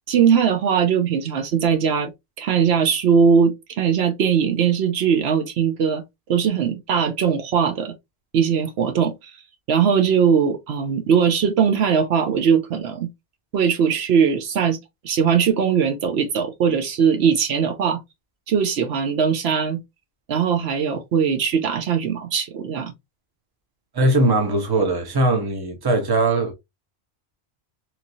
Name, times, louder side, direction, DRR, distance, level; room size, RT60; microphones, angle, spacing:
voice 1, 0.1-2.1 2.4-6.0 6.3-7.9 8.3-9.3 9.7-13.1 13.5-14.8 15.0-18.0 18.5-19.8 20.3-22.9, right 7 dB, 75° right, 0.9 m, -20 dB
voice 2, 23.9-26.5, right 2 dB, 25° right, 0.8 m, -20 dB
3.0 x 2.5 x 2.6 m
omnidirectional pair, 1.1 m